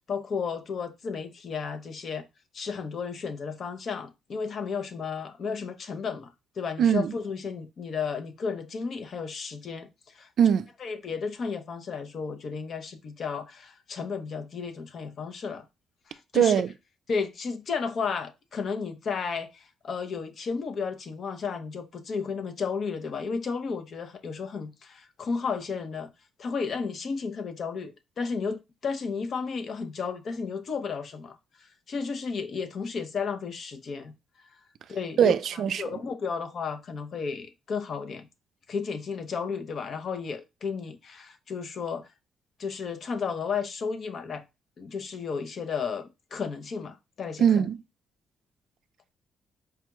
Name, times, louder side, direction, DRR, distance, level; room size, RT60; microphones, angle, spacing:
voice 1, 0.1-2.3 2.5-6.3 6.6-10.3 10.8-15.7 16.1-16.6 17.1-26.1 26.4-34.1 34.9-35.3 35.8-38.3 38.7-42.1 42.6-44.4 44.8-47.7, left 5 dB, 55° left, 0.7 m, -33 dB
voice 2, 6.8-7.1 10.4-10.7 16.3-16.7 35.2-35.9 47.4-47.8, right 8 dB, 65° right, 0.3 m, -21 dB
4.7 x 2.3 x 2.9 m
cardioid pair, 90°, 0 cm